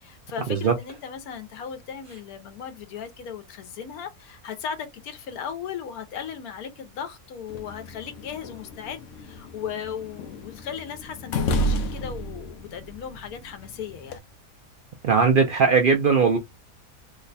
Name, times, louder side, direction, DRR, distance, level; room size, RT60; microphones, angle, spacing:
voice 1, 0.0-14.2, left 7 dB, 85° left, 1.2 m, -37 dB
sound 1, 7.5-14.2, equal, 65° left, 0.9 m, -32 dB
voice 2, 15.0-16.4, right 5 dB, 75° right, 0.5 m, -19 dB
3.1 x 2.2 x 3.9 m
omnidirectional pair, 1.5 m